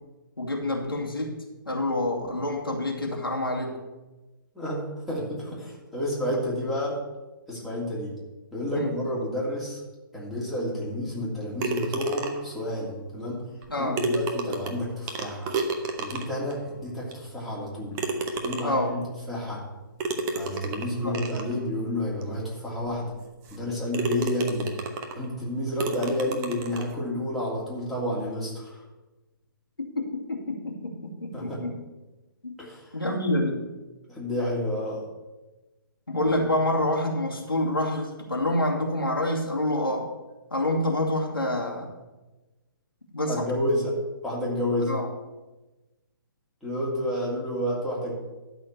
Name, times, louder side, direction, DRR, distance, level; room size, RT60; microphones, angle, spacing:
voice 1, 0.4-1.4 1.7-3.7 8.7-8.9 13.7-14.0 18.6-18.9 21.0-21.2 29.8-31.7 32.4-32.5 32.9-33.6 36.1-40.1 40.5-41.9 43.1-43.5 44.9-45.1, left 1 dB, 85° left, -1 dB, 2.4 m, -27 dB
voice 2, 5.1-7.0 7.5-8.1 8.5-9.8 10.1-13.4 13.8-15.4 16.0-18.0 18.4-19.6 20.3-23.1 23.5-24.7 25.2-28.8 31.3-31.6 32.6-33.0 34.1-35.0 43.3-44.0 44.2-44.9 46.6-48.1, left 1 dB, ahead, -7 dB, 2.8 m, -30 dB
sound 1, 11.6-12.6 13.6-13.7 14.0-16.5 17.1-17.2 18.0-18.9 20.0-21.5 22.2-22.3 22.8-22.9 23.5-23.6 23.9-25.2 25.8-26.9, right 3 dB, 25° right, 1.0 m, -31 dB
12.5 x 4.3 x 8.3 m, 1.1 s
figure-of-eight pair, 130°, 12 cm